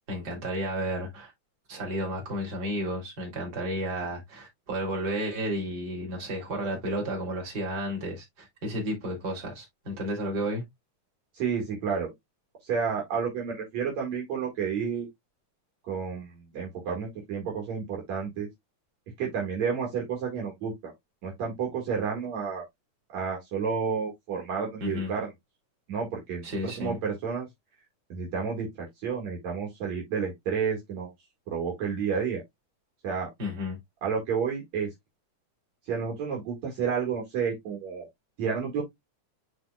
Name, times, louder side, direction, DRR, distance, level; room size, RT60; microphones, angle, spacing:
voice 1, 0.1-1.3 1.7-10.6 24.8-25.1 26.4-27.0 33.4-33.8, equal, 30° right, 3.5 m, -32 dB
voice 2, 11.3-12.1 12.6-15.1 15.9-18.5 19.2-20.9 21.2-22.6 23.1-25.3 25.9-27.5 28.1-31.1 31.5-32.4 33.0-33.3 34.0-34.9 35.9-38.1 38.4-38.8, right 6 dB, 60° right, 3.1 m, -30 dB
10.0 x 4.2 x 2.3 m
omnidirectional pair, 3.6 m